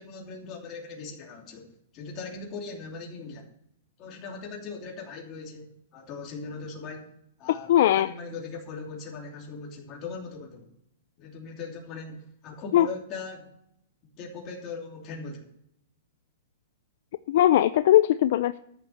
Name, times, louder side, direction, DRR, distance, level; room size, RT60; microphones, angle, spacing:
voice 1, 0.0-3.5 4.0-7.1 7.4-10.7 11.2-13.5 14.2-15.5, left 4 dB, 25° left, -1 dB, 2.9 m, -40 dB
voice 2, 7.7-8.1 12.7-12.9 17.3-18.6, left 12 dB, 50° left, 13 dB, 0.4 m, -19 dB
13.5 x 7.1 x 6.5 m, 0.74 s
supercardioid pair, 175°, 0 cm